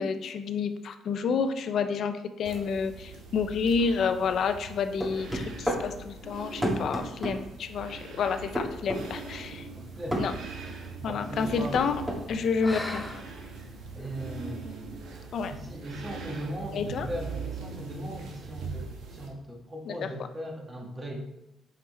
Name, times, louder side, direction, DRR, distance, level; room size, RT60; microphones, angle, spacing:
voice 1, 0.0-9.7 10.2-10.3 11.0-12.0 12.3-13.0 15.3-15.5 16.7-17.1 19.9-20.1, left 5 dB, 65° left, 9 dB, 0.6 m, -29 dB
sound 1, 2.4-19.3, right 4 dB, 85° right, 1.3 m, -42 dB
sound 2, 5.0-5.8 6.6-7.4 8.6-9.0 10.1-10.3 11.4-12.2, equal, 10° right, 1.7 m, -29 dB
sound 3, 9.4-14.4, left 1 dB, 10° left, 0.8 m, -44 dB
voice 2, 11.0-11.8 13.9-15.1 15.5-21.2, equal, 25° right, 0 dB, 1.6 m, -38 dB
5.7 x 5.2 x 4.2 m, 0.86 s
cardioid pair, 90°, 0 cm